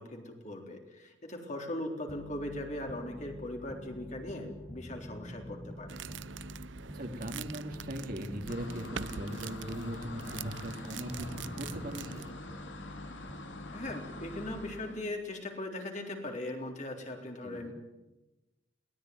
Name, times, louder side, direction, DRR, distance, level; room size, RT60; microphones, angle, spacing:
voice 1, 0.0-6.0 13.7-17.7, left 1 dB, 40° left, 2 dB, 3.7 m, -39 dB
sound 1, 2.1-15.0, left 1 dB, 10° left, 1.9 m, -47 dB
sound 2, 5.9-12.3, right 7 dB, 75° right, 0.7 m, -45 dB
voice 2, 6.9-12.2 17.4-17.7, equal, 50° right, 3 dB, 3.2 m, -39 dB
sound 3, 8.5-15.0, left 2 dB, 75° left, 3.1 m, -46 dB
22.5 x 18.0 x 9.5 m, 1.1 s
head